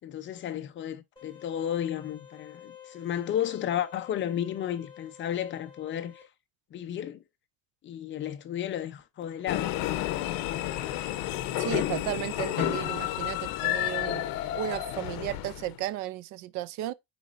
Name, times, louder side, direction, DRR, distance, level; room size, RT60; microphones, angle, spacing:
voice 1, 0.0-6.1 6.7-7.2 7.8-9.7, left 10 dB, 35° left, 0.6 m, -33 dB
sound 1, 1.2-6.2, left 9 dB, 15° left, 2.7 m, -50 dB
sound 2, 9.5-15.8, left 14 dB, 80° left, 0.8 m, -31 dB
voice 2, 11.6-14.2 14.5-16.9, right 14 dB, 55° right, 0.5 m, -34 dB
9.3 x 4.2 x 2.5 m
cardioid pair, 175°, 35 cm